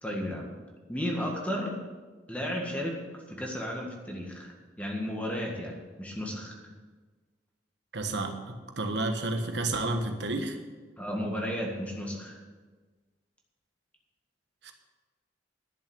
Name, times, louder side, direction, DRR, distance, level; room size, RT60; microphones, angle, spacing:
voice 1, 0.0-0.5 0.9-1.8 2.3-3.0 3.3-6.5 11.0-12.4, equal, 10° left, -1 dB, 1.7 m, -33 dB
voice 2, 7.9-10.6 14.6-14.7, right 2 dB, 65° right, 5 dB, 1.3 m, -31 dB
11.5 x 7.1 x 8.5 m, 1.4 s
head